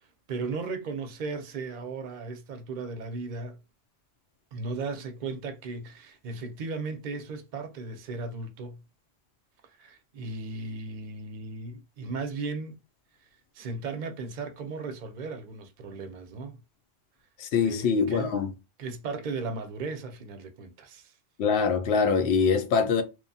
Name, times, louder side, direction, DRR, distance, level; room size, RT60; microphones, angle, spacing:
voice 1, 0.3-3.6 4.5-8.8 9.8-12.8 13.5-16.6 17.6-18.3 18.8-21.1, right 3 dB, 55° right, 0.6 m, -36 dB
voice 2, 17.4-18.5 21.4-23.0, left 5 dB, 80° left, 0.8 m, -24 dB
3.0 x 2.1 x 2.7 m
omnidirectional pair, 1.1 m